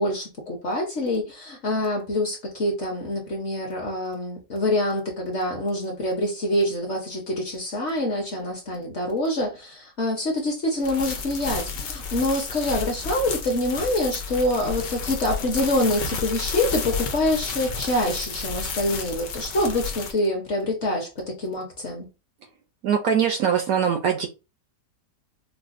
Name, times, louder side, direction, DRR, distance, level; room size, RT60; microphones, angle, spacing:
voice 1, 0.0-22.1, left 1 dB, 55° left, 0.9 m, -26 dB
sound 1, 10.8-20.1, left 5 dB, 85° left, 1.3 m, -31 dB
voice 2, 22.8-24.3, right 7 dB, 70° right, 0.9 m, -22 dB
4.8 x 2.0 x 2.5 m
omnidirectional pair, 1.9 m